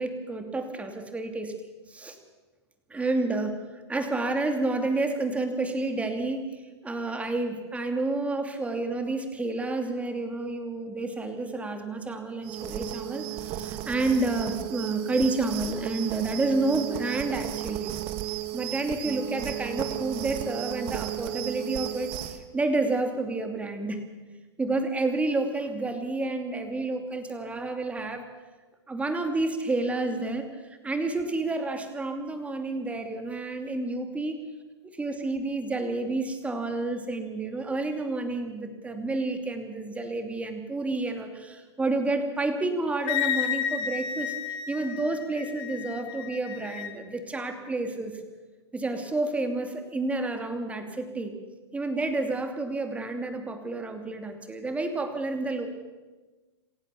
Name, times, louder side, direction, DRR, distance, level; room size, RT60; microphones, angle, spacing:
voice 1, 0.0-1.5 1.9-2.2 2.9-17.9 18.5-24.0 24.6-28.2 28.9-34.4 34.8-44.3 44.7-48.2 48.7-51.3 51.7-55.7, right 2 dB, 10° right, 6 dB, 2.7 m, -30 dB
sound 1, 12.4-22.4, right 13 dB, 40° right, 1.9 m, -34 dB
Wind instrument woodwind instrument, 43.1-46.9, left 9 dB, 35° left, 2.3 m, -32 dB
28.0 x 15.5 x 7.0 m, 1.2 s
hypercardioid pair, 130°, 14 cm